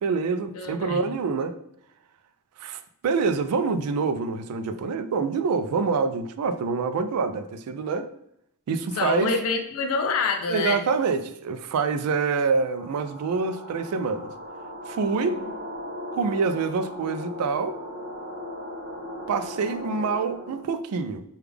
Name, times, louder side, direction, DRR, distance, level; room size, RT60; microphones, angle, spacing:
voice 1, 0.0-1.6 2.6-8.1 8.7-9.3 10.5-14.3 14.9-15.4 16.1-17.8 19.3-21.2, right 4 dB, 80° right, 10 dB, 0.3 m, -26 dB
voice 2, 0.5-1.1 9.0-10.8 15.1-15.3, left 4 dB, 65° left, 4 dB, 0.4 m, -27 dB
sound 1, 12.4-20.8, left 1 dB, 45° right, 0.7 m, -38 dB
3.4 x 2.3 x 3.3 m, 0.77 s
head